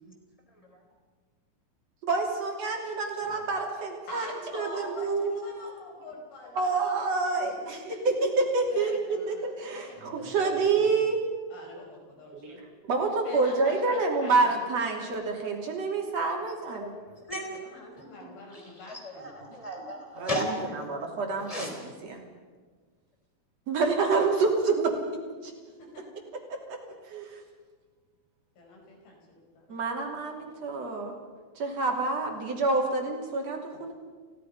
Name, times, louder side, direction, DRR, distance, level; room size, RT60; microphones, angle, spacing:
voice 1, 2.0-4.3 4.5-5.3 6.6-11.2 12.4-12.6 12.8-16.9 20.2-22.2 23.7-24.9 25.4-25.5 26.5-26.8 27.1-27.3 29.7-31.2 31.6-33.9, right 3 dB, 45° right, 1 dB, 3.8 m, -28 dB
voice 2, 4.1-6.8 7.6-8.1 8.7-10.3 11.5-12.6 13.2-14.7 17.5-19.6 25.8-26.0 28.6-29.8, left 2 dB, 80° left, 0 dB, 7.0 m, -45 dB
voice 3, 10.0-10.3 16.8-17.5 18.0-18.1 18.5-21.0 21.4-21.8, equal, 10° left, 1 dB, 3.7 m, -36 dB
30.0 x 17.0 x 5.5 m, 1.4 s
omnidirectional pair, 4.3 m